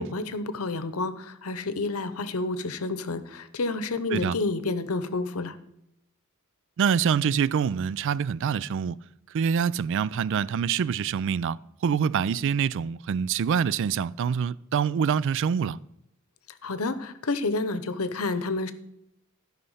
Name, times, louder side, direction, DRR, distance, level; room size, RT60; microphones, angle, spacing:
voice 1, 0.0-5.5 16.6-18.7, left 3 dB, 80° left, 0.8 m, -29 dB
voice 2, 6.8-9.0 9.3-11.6 11.8-15.8, right 7 dB, 60° right, 0.3 m, -25 dB
13.0 x 5.6 x 5.6 m
head